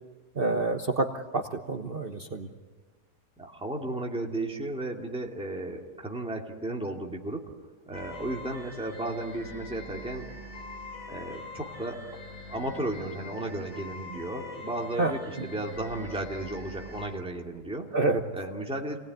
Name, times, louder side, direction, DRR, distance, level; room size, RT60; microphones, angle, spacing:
voice 1, 0.4-1.1 1.3-2.5 15.0-15.1 17.9-18.2, right 2 dB, 35° right, 5 dB, 1.2 m, -27 dB
voice 2, 3.4-7.5 7.9-10.2 11.1-12.0 12.5-17.9 18.3-19.0, right 1 dB, 5° right, 0 dB, 2.5 m, -34 dB
sound 1, 7.9-17.1, left 2 dB, 55° left, 8.2 m, -43 dB
28.0 x 19.5 x 9.4 m, 1.4 s
omnidirectional pair, 1.7 m